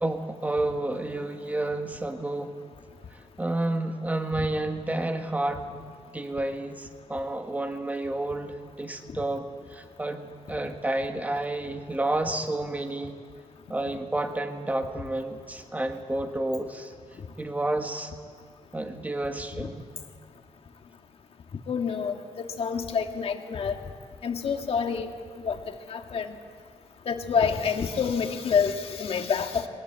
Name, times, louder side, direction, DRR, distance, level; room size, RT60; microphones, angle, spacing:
voice 1, 0.0-2.6 3.1-13.2 13.7-16.9 17.4-18.1 18.7-19.9, right 2 dB, 15° right, 6 dB, 1.6 m, -30 dB
voice 2, 21.7-23.8 24.2-25.1 25.4-25.6 25.9-26.4 27.1-29.7, left 6 dB, 55° left, 5 dB, 1.8 m, -27 dB
21.5 x 19.5 x 8.1 m, 2.3 s
wide cardioid pair, 130°, 12 cm